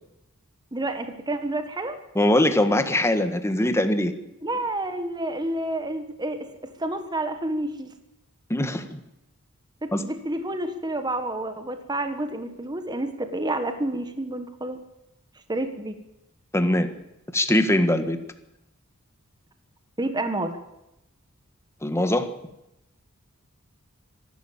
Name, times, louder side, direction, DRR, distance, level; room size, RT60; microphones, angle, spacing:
voice 1, 0.7-2.0 4.4-7.9 9.8-14.8 15.5-15.9 20.0-20.6, right 1 dB, 20° right, 8 dB, 1.6 m, -29 dB
voice 2, 2.1-4.1 8.5-9.0 9.9-10.0 16.5-16.9 17.3-18.2 21.8-22.3, left 1 dB, 15° left, 8 dB, 1.6 m, -22 dB
25.5 x 12.0 x 8.9 m, 0.90 s
head